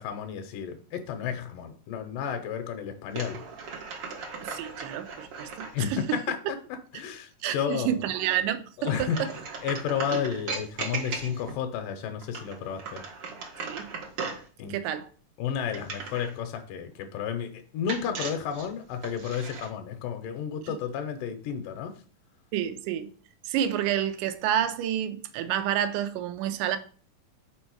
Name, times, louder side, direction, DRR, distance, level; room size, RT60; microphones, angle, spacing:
voice 1, 0.0-3.4 5.7-6.4 6.9-8.0 8.8-9.3 9.6-13.0 14.6-14.8 15.4-22.0, left 8 dB, 80° left, 2.2 m, -32 dB
sound 1, 3.1-5.7 8.8-11.6 12.2-14.5 15.7-16.4 17.9-19.7, right 4 dB, 60° right, 1.5 m, -37 dB
voice 2, 4.4-6.2 7.4-9.3 13.6-13.9 14.6-15.1 20.6-20.7 22.5-23.1 23.4-26.8, right 10 dB, 80° right, 2.1 m, -29 dB
5.4 x 4.2 x 4.5 m
omnidirectional pair, 3.9 m